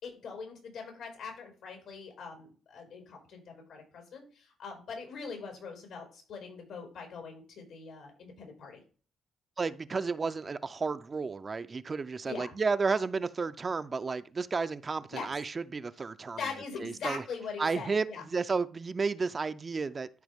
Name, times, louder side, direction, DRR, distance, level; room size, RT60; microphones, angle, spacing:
voice 1, 0.0-8.8 12.2-12.5 15.1-15.3 16.3-18.2, left 5 dB, 85° left, 5.0 m, -42 dB
voice 2, 9.6-16.4 16.8-17.2 17.6-20.1, right 4 dB, 35° right, 0.4 m, -32 dB
13.0 x 4.8 x 3.5 m
cardioid pair, 90°, 0 cm